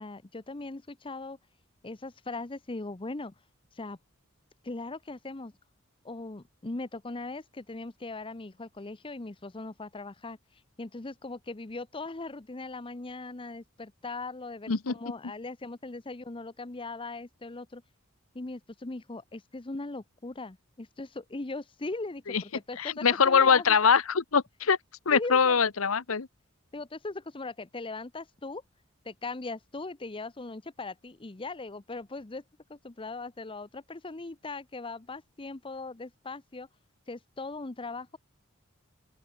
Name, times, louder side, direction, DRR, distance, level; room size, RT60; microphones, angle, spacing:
voice 1, 0.0-1.4 1.8-3.3 3.7-4.0 4.6-5.5 6.0-10.4 10.8-17.8 18.3-23.8 25.1-25.6 26.7-28.6 29.0-32.4 32.7-36.7 37.1-38.2, left 3 dB, 25° left, 0.8 m, -39 dB
voice 2, 22.8-24.8 25.1-26.3, left 6 dB, 85° left, 1.0 m, -23 dB
open air
head